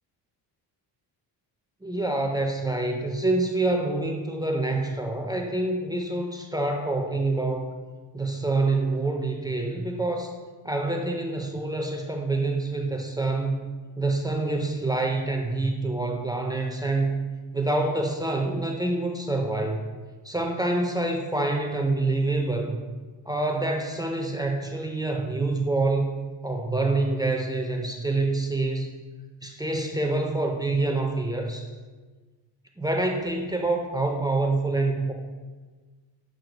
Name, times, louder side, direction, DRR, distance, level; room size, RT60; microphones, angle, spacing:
voice 1, 1.8-7.8 8.1-10.3 10.6-13.6 14.0-17.2 17.5-19.9 20.2-22.8 23.3-26.1 26.4-28.9 29.4-31.7 32.8-35.1, right 2 dB, 10° right, 2 dB, 0.3 m, -26 dB
7.5 x 2.6 x 5.1 m, 1.4 s
cardioid pair, 120°, 43 cm